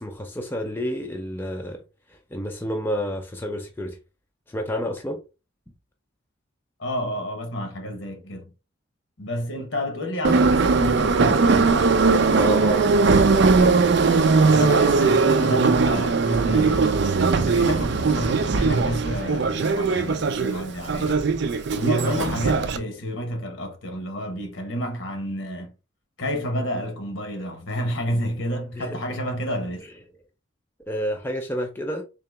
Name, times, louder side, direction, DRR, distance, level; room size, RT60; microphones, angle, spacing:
voice 1, 0.0-1.8 2.1-4.0 4.5-5.2 12.3-12.9 28.7-29.0 30.9-32.0, equal, 10° left, 0.5 m, -29 dB
voice 2, 6.8-8.5 9.2-11.9 14.4-17.0 17.3-21.2 21.7-25.7 26.2-29.8, equal, 70° left, 1.0 m, -30 dB
Subway metro underground, 10.2-22.8, right 4 dB, 55° right, 0.4 m, -19 dB
3.8 x 2.9 x 3.3 m
head